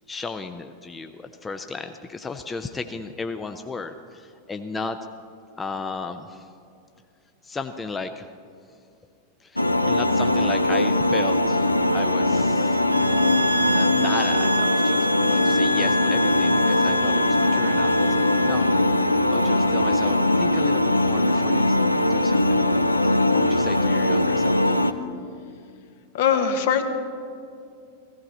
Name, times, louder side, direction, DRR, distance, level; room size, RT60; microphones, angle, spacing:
voice 1, 0.1-5.0 5.6-6.5 7.4-8.3 9.4-13.2 13.7-19.0 19.3-22.7 23.0-24.7, left 4 dB, 15° left, 7 dB, 0.5 m, -35 dB
sound 1, 9.6-24.9, left 1 dB, 85° left, 0.5 m, -21 dB
sound 2, 12.9-18.8, equal, 80° right, 0.6 m, -28 dB
voice 2, 26.1-26.8, left 7 dB, 55° left, 7 dB, 1.0 m, -21 dB
15.5 x 15.0 x 4.2 m, 2.4 s
figure-of-eight pair, 90°, 0 cm